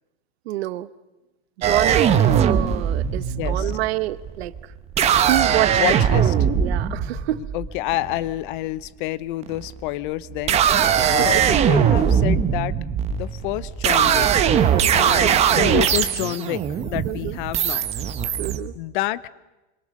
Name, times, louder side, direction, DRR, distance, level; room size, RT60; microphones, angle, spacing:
voice 1, 0.5-0.9 1.6-4.5 5.3-6.0 6.6-7.4 11.0-11.4 14.8-15.1 17.0-17.4 18.4-18.7, right 16 dB, 90° right, 16 dB, 1.1 m, -27 dB
sound 1, 1.6-8.4 9.4-9.9 10.3-18.6, right 8 dB, 20° right, 0.9 m, -20 dB
voice 2, 3.4-3.7 5.7-6.3 7.4-10.6 11.1-12.7 13.1-14.3 14.9-17.8 18.7-19.3, left 16 dB, 55° left, 19 dB, 0.8 m, -28 dB
26.5 x 23.0 x 6.5 m, 1.1 s
supercardioid pair, 170°, 30 cm